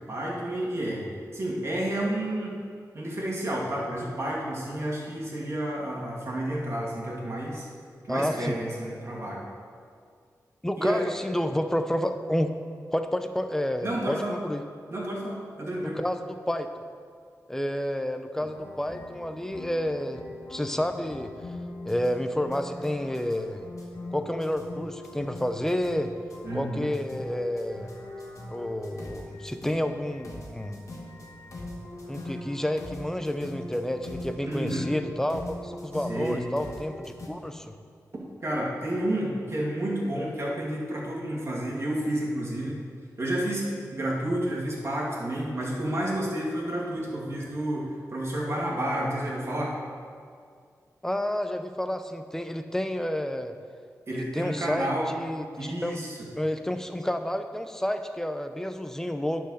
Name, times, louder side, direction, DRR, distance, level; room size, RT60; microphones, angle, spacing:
voice 1, 0.1-2.6 2.9-7.7 8.1-9.5 10.8-11.1 13.8-14.4 14.9-16.0 26.4-26.9 34.4-34.8 36.1-36.5 38.4-42.8 43.2-49.8 54.1-55.1 55.6-56.1, right 1 dB, 45° right, -4 dB, 2.3 m, -30 dB
voice 2, 8.1-8.6 10.6-12.5 12.9-14.6 15.8-16.8 17.5-20.2 20.5-21.3 21.9-23.7 24.1-26.1 26.5-27.9 28.5-30.8 32.1-37.7 51.0-53.5 54.1-56.0 56.4-59.5, left 1 dB, 5° left, 8 dB, 0.6 m, -30 dB
sound 1, 18.4-37.3, left 2 dB, 55° left, 1.7 m, -41 dB
10.0 x 4.6 x 6.5 m, 2.1 s
cardioid pair, 70°, 6 cm